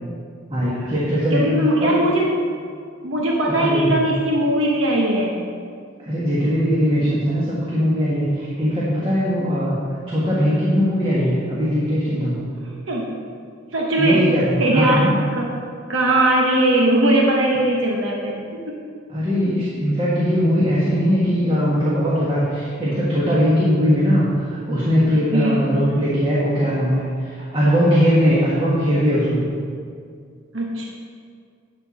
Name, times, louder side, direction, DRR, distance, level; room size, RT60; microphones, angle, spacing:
voice 1, 0.5-1.5 1.8-1.9 3.6-4.0 6.1-9.8 10.1-12.4 14.0-15.1 19.1-27.0 27.3-29.4, equal, 30° right, -7 dB, 1.5 m, -20 dB
voice 2, 1.3-2.3 3.0-5.4 10.4-10.6 12.6-13.1 13.7-14.3 14.6-15.5 15.9-18.8 25.3-25.6 30.5-30.8, right 1 dB, 75° right, -2 dB, 1.0 m, -20 dB
11.0 x 4.4 x 6.3 m, 2.2 s
head